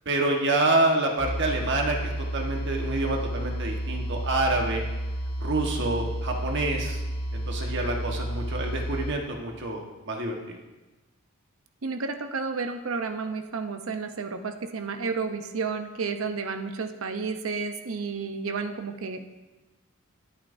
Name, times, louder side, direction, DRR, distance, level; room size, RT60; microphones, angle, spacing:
voice 1, 0.0-4.8 5.4-7.0 7.3-10.6, right 2 dB, 60° right, 1 dB, 1.4 m, -27 dB
sound 1, 1.2-9.1, right 1 dB, 30° left, 2.3 m, -31 dB
voice 2, 11.8-19.3, right 4 dB, 75° right, 7 dB, 0.8 m, -31 dB
21.0 x 8.6 x 2.7 m, 1.1 s
head